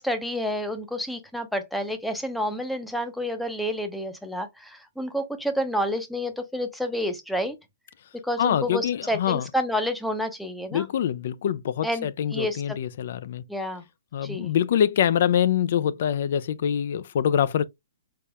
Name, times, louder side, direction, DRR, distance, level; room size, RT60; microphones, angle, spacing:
voice 1, 0.0-7.6 8.1-10.9 11.8-12.8 13.5-13.8 14.2-14.5, equal, ahead, 0.6 m, -29 dB
voice 2, 8.4-9.5 10.7-13.4 14.1-17.6, left 9 dB, 55° left, 0.3 m, -24 dB
4.2 x 3.4 x 2.2 m
hypercardioid pair, 145°, 0 cm